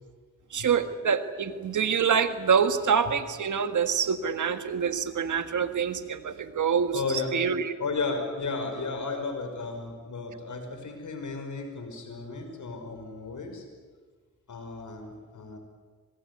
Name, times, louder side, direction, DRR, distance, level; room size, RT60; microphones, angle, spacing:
voice 1, 0.5-7.0 7.3-7.7, right 6 dB, 85° right, 10 dB, 1.7 m, -26 dB
voice 2, 6.9-7.5 7.8-13.6 14.5-15.6, left 4 dB, 85° left, 5 dB, 5.5 m, -34 dB
24.5 x 21.5 x 9.8 m, 1.5 s
cardioid pair, 50°, 29 cm